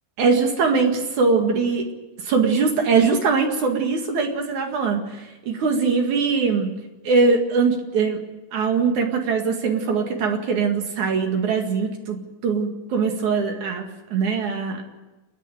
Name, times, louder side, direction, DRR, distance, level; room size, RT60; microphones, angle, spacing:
voice 1, 0.2-1.9 2.2-6.7 7.0-8.2 8.5-14.8, right 5 dB, 60° right, 3 dB, 3.2 m, -22 dB
29.5 x 10.0 x 9.2 m, 1.1 s
omnidirectional pair, 4.1 m